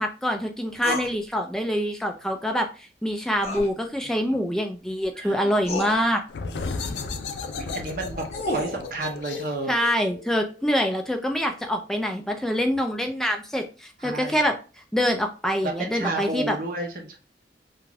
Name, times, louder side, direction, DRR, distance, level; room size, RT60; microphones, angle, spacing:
voice 1, 0.0-6.2 9.7-14.5 14.9-16.6, equal, 5° left, 3 dB, 0.3 m, -25 dB
sound 1, 0.8-1.1 3.4-3.7 5.0-5.1 5.6-5.9 7.9-8.8, left 2 dB, 40° left, 0.6 m, -29 dB
voice 2, 4.0-4.4 5.2-5.6 6.4-7.1 7.6-9.7 14.0-14.4 15.6-17.2, right 2 dB, 50° right, 3 dB, 0.6 m, -32 dB
sound 2, 6.3-11.7, left 4 dB, 85° left, 0.3 m, -35 dB
2.5 x 2.3 x 3.2 m, 0.34 s
head